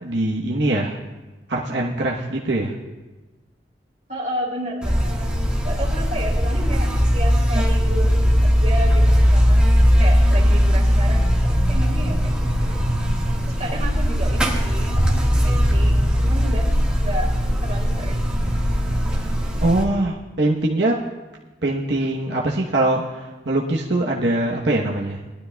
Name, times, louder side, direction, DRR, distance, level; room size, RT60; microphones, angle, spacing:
voice 1, 0.0-1.0 1.5-2.8 19.2-19.3 19.6-21.0 21.6-25.2, right 2 dB, 75° right, -2 dB, 1.0 m, -22 dB
voice 2, 4.1-5.3 5.6-9.7 10.0-11.3 11.6-12.8 13.5-16.7 17.0-17.3 17.6-18.4, right 1 dB, 40° right, -2 dB, 2.7 m, -32 dB
Buzz, 4.8-19.8, equal, 5° right, 1.6 m, -19 dB
20.0 x 12.0 x 2.3 m, 1.2 s
head